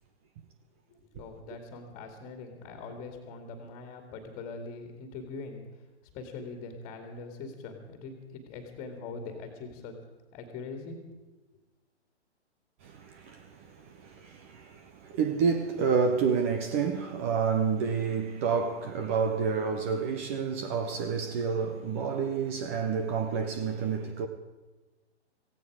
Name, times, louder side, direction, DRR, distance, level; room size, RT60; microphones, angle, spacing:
voice 1, 1.1-5.6 6.0-10.0 10.3-11.2, left 4 dB, 20° left, 2.2 m, -42 dB
voice 2, 12.8-24.3, right 6 dB, 10° right, 0.4 m, -29 dB
17.5 x 16.0 x 4.8 m
hypercardioid pair, 135°, 35 cm